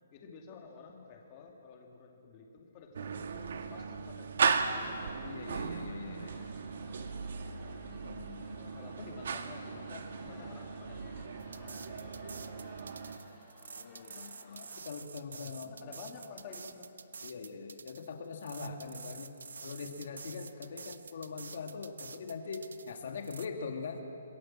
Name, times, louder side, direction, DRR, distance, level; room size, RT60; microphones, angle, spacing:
voice 1, 0.1-5.4 8.4-12.9 15.3-16.9, left 5 dB, 20° left, 1 dB, 2.6 m, -52 dB
sound 1, 2.9-13.2, right 5 dB, 55° right, 1.5 m, -37 dB
Booing Crowd, 4.7-14.8, left 1 dB, 5° left, 4.1 m, -57 dB
voice 2, 5.2-6.5 7.8-8.4 10.2-10.5 12.0-12.4 13.8-15.7 17.2-24.0, left 5 dB, 45° left, 4 dB, 2.5 m, -43 dB
sound 2, 11.4-23.5, right 5 dB, 90° right, 1.1 m, -48 dB
27.0 x 21.0 x 7.6 m, 2.7 s
hypercardioid pair, 175°, 0 cm